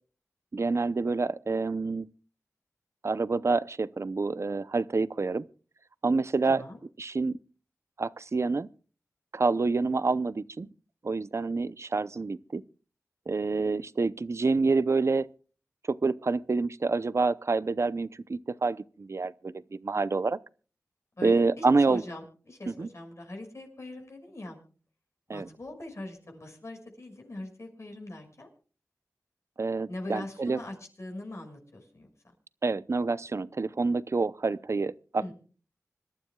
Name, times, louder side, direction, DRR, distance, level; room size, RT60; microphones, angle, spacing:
voice 1, 0.5-2.1 3.0-5.4 6.0-6.6 7.0-7.4 8.0-8.7 9.3-10.7 11.0-12.6 13.3-15.3 15.9-20.4 21.2-22.0 22.7-22.9 25.3-25.5 29.6-30.6 32.6-35.3, right 3 dB, 55° right, 0.6 m, -27 dB
voice 2, 6.4-6.8 21.2-24.6 25.3-28.5 29.9-32.3 35.1-35.3, left 1 dB, 55° left, 5.9 m, -42 dB
26.0 x 12.5 x 2.3 m
wide cardioid pair, 70°, 6 cm